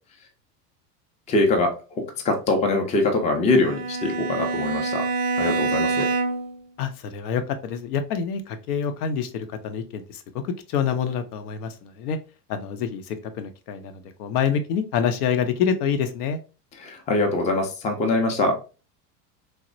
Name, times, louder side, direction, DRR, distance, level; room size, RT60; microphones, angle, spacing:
voice 1, 1.3-5.0 5.4-6.1 16.8-18.6, left 2 dB, 15° left, 3 dB, 0.4 m, -23 dB
Bowed string instrument, 3.5-6.6, right 3 dB, 50° right, 0.5 m, -26 dB
voice 2, 6.8-10.4 10.7-12.2 12.5-16.4, left 7 dB, 65° left, 9 dB, 0.6 m, -27 dB
3.1 x 2.0 x 2.5 m, 0.34 s
hypercardioid pair, 80°, 49 cm